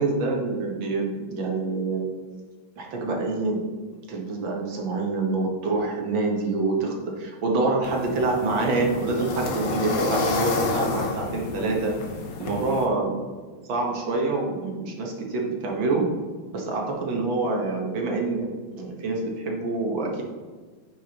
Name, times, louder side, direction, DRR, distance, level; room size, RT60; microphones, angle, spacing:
voice 1, 0.0-2.1 2.8-3.6 4.1-11.9 12.4-13.3 13.6-16.0 16.5-20.2, right 3 dB, 65° right, 0 dB, 1.9 m, -26 dB
sound 1, 7.8-12.8, left 3 dB, 55° left, 1.1 m, -29 dB
9.0 x 6.0 x 2.9 m, 1.4 s
omnidirectional pair, 2.3 m